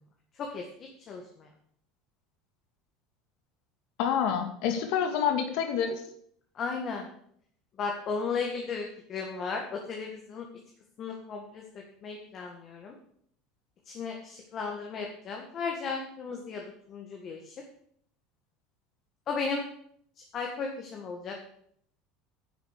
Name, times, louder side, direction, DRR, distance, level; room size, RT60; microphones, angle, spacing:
voice 1, 1.1-1.5 6.5-7.1 7.8-10.5 11.0-12.9 13.9-17.5 19.3-19.6 20.3-21.4, left 5 dB, 35° left, 1 dB, 1.7 m, -35 dB
voice 2, 4.0-6.0, left 8 dB, 65° left, 5 dB, 2.2 m, -27 dB
10.0 x 7.2 x 6.7 m, 0.66 s
supercardioid pair, 145°, 0 cm